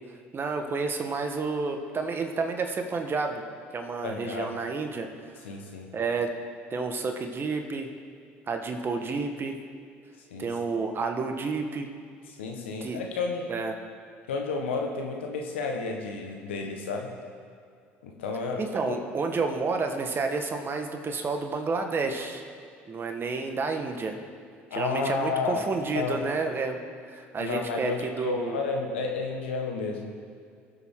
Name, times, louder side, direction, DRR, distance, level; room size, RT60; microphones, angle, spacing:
voice 1, 0.3-3.4 3.7-5.1 5.9-6.3 6.7-7.9 8.5-9.5 10.4-11.9 12.8-13.0 13.5-13.7 18.6-22.4 22.9-24.2 24.7-26.8 27.1-28.6, right 4 dB, 35° right, 5 dB, 1.5 m, -30 dB
voice 2, 4.0-4.5 5.4-5.9 10.3-10.5 12.4-13.5 14.3-17.1 18.0-18.6 18.9-19.0 24.7-25.6 25.9-26.2 27.4-30.1, left 4 dB, 90° left, 1 dB, 1.4 m, -31 dB
21.0 x 7.7 x 3.8 m, 2.3 s
hypercardioid pair, 70°, 6 cm